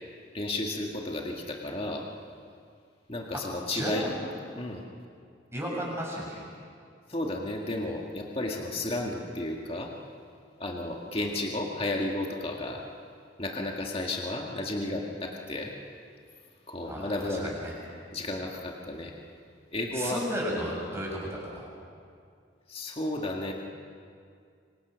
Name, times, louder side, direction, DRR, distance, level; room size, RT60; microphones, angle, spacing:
voice 1, 0.3-2.0 3.1-4.1 4.5-4.8 7.1-9.9 10.6-12.8 13.4-15.7 16.7-17.6 18.1-19.1 19.7-20.2 22.7-23.5, left 2 dB, 30° left, 0 dB, 2.0 m, -33 dB
voice 2, 3.7-4.1 5.5-6.4 16.9-17.7 19.9-21.7, equal, 15° right, -3 dB, 7.1 m, -34 dB
27.0 x 25.0 x 6.3 m, 2.2 s
head